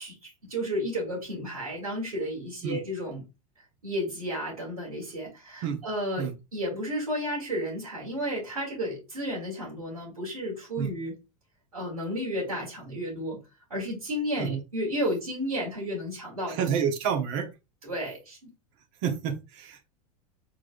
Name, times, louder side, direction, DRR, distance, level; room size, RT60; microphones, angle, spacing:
voice 1, 0.0-3.2 3.8-11.1 11.7-13.4 13.7-16.6 17.8-18.5, equal, 90° right, 2.7 m, -32 dB
voice 2, 16.5-17.5 19.0-19.9, right 7 dB, 60° right, 1.2 m, -29 dB
4.6 x 4.1 x 2.5 m
hypercardioid pair, 95°, 18 cm